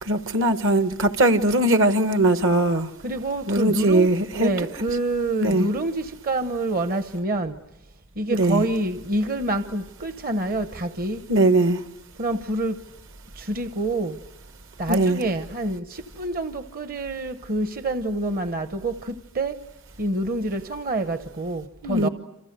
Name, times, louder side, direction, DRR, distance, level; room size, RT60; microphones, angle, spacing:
voice 1, 0.0-2.9 3.5-4.5 5.4-5.7 8.3-8.6 11.3-11.8 14.9-15.2 21.8-22.1, right 1 dB, 65° right, 1.3 m, -20 dB
voice 2, 3.0-7.5 8.2-11.2 12.2-12.8 13.4-14.2 14.8-19.6 20.0-22.1, right 2 dB, 45° right, 0.9 m, -27 dB
28.5 x 27.0 x 6.7 m
head